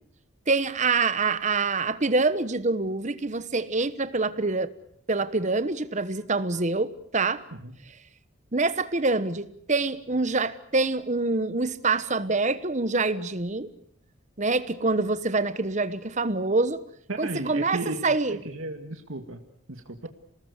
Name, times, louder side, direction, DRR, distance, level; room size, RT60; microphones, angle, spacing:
voice 1, 0.5-4.7 5.1-7.4 8.5-13.7 14.4-16.8 17.2-18.4, right 3 dB, 35° right, 13 dB, 1.2 m, -26 dB
voice 2, 17.1-18.2 18.5-19.4 19.7-20.1, right 2 dB, 75° right, 4 dB, 2.1 m, -34 dB
27.0 x 19.5 x 8.2 m, 0.71 s
head